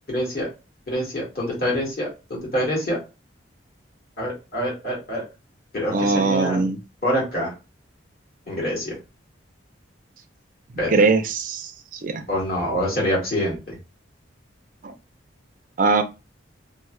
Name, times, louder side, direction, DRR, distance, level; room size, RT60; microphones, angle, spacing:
voice 1, 0.1-0.5 0.9-3.0 4.2-5.2 5.7-6.6 7.0-7.5 8.5-9.0 10.8-10.9 12.3-13.7, equal, 50° left, -5 dB, 1.8 m, -25 dB
voice 2, 5.9-6.8 10.9-12.2 14.8-14.9 15.8-16.0, right 3 dB, 45° right, 9 dB, 0.4 m, -21 dB
3.2 x 2.1 x 3.0 m, 0.28 s
head